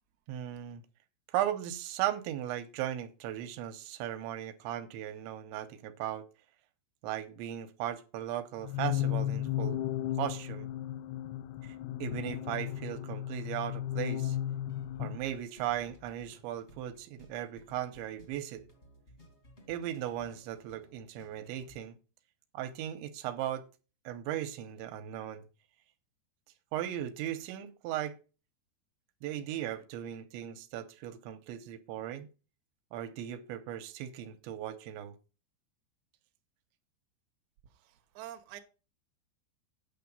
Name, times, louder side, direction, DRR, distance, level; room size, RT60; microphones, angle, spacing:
voice 1, 0.3-0.8 1.3-6.2 7.0-9.8 10.2-10.7 11.6-11.8 12.0-14.4 15.0-18.6 19.7-22.0 22.5-23.7 24.0-25.4 26.7-28.2 29.2-32.3 32.9-35.2, right 11 dB, 85° right, 3.2 m, -37 dB
sound 1, 8.6-15.2, left 12 dB, 85° left, 2.3 m, -34 dB
sound 2, 14.5-21.8, left 2 dB, 35° left, 1.0 m, -58 dB
voice 2, 37.8-38.6, right 12 dB, 70° right, 1.8 m, -47 dB
9.3 x 6.9 x 5.3 m
omnidirectional pair, 5.3 m